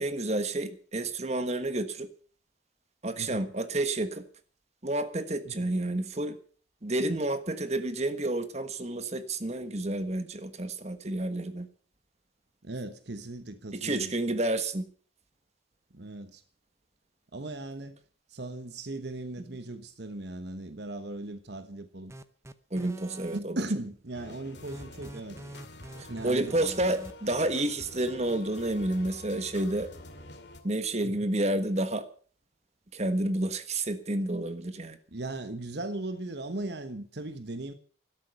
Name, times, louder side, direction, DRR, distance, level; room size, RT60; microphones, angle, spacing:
voice 1, 0.0-2.1 3.0-4.2 4.8-6.4 6.8-11.7 13.7-14.9 22.7-23.6 26.0-29.9 30.6-32.1 32.9-35.0, right 1 dB, 35° right, 1.4 m, -30 dB
voice 2, 3.2-3.5 5.4-5.7 12.6-14.1 15.9-16.4 17.3-18.0 18.3-22.1 23.3-25.4 26.1-26.6 31.0-31.3 35.1-37.7, right 2 dB, 60° right, 1.1 m, -38 dB
sound 1, 22.1-23.4 24.7-27.1, right 1 dB, 15° right, 0.7 m, -44 dB
sound 2, 24.1-30.6, left 2 dB, 60° left, 2.4 m, -47 dB
13.0 x 12.5 x 6.9 m
head